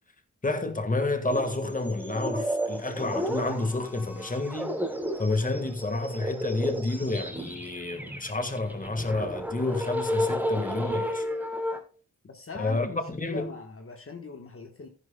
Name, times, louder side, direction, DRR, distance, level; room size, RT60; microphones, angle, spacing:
voice 1, 0.4-4.8 5.2-11.3 12.6-13.5, left 2 dB, 25° left, 1.7 m, -29 dB
sound 1, 1.3-11.8, equal, 5° right, 3.1 m, -33 dB
voice 2, 12.2-14.9, left 4 dB, 45° left, 1.4 m, -41 dB
14.0 x 11.0 x 2.3 m
wide cardioid pair, 95°, 30 cm